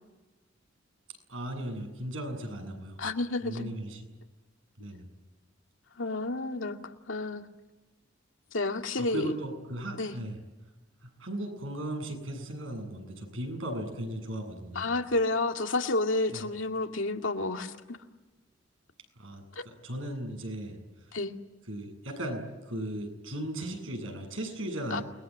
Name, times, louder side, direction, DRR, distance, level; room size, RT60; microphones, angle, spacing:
voice 1, 1.3-3.0 3.4-4.0 4.8-5.1 9.0-10.4 11.0-14.9 16.3-16.4 19.2-20.8 21.7-25.0, right 1 dB, 90° right, 5 dB, 8.0 m, -37 dB
voice 2, 3.0-3.7 6.0-7.4 8.5-9.3 10.0-10.2 14.7-18.0 21.1-21.3 24.9-25.0, left 2 dB, 80° left, 4 dB, 2.2 m, -30 dB
29.0 x 21.5 x 8.9 m, 1.2 s
head